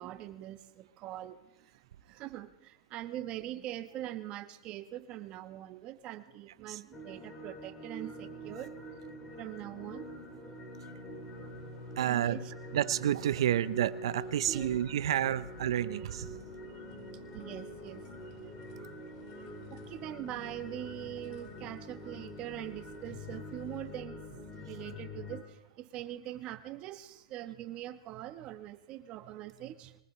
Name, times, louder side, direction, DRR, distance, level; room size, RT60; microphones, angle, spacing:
voice 1, 0.0-1.4 2.1-8.7 9.4-10.5 12.0-12.5 14.5-14.7 15.0-15.1 17.3-18.0 19.7-24.4 24.7-25.4 25.8-30.0, right 13 dB, 35° right, 10 dB, 1.1 m, -42 dB
sound 1, 6.9-25.4, equal, 15° left, 2.6 m, -45 dB
sound 2, 10.9-23.9, left 7 dB, 55° left, 2.1 m, -61 dB
voice 2, 12.0-12.4 12.7-16.4 18.8-18.9, right 11 dB, 75° right, 14 dB, 0.6 m, -30 dB
23.0 x 19.0 x 3.2 m, 0.91 s
hypercardioid pair, 135°, 3 cm